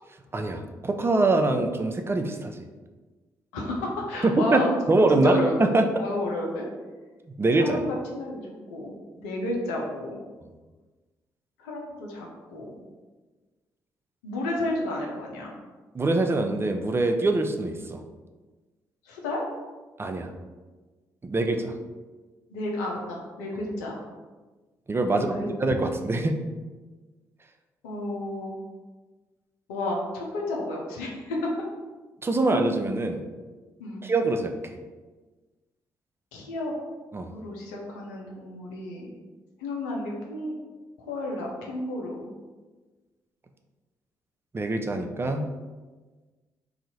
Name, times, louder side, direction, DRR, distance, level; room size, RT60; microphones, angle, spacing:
voice 1, 0.3-2.6 4.2-5.9 7.4-7.8 15.9-18.0 20.0-20.3 21.2-21.7 24.9-26.3 32.2-33.2 34.0-34.7 37.1-37.3 44.5-45.5, right 2 dB, 25° right, 5 dB, 0.4 m, -24 dB
voice 2, 3.5-5.7 6.0-6.7 7.6-8.9 9.2-10.2 11.6-12.7 14.2-15.5 19.0-19.4 22.5-24.0 25.1-25.9 27.8-28.6 29.7-31.5 33.8-34.0 36.3-36.7 37.3-39.1 39.6-40.5 41.0-42.3, left 1 dB, 80° left, -1 dB, 0.6 m, -32 dB
2.7 x 2.4 x 4.1 m, 1.3 s
hypercardioid pair, 45°, 9 cm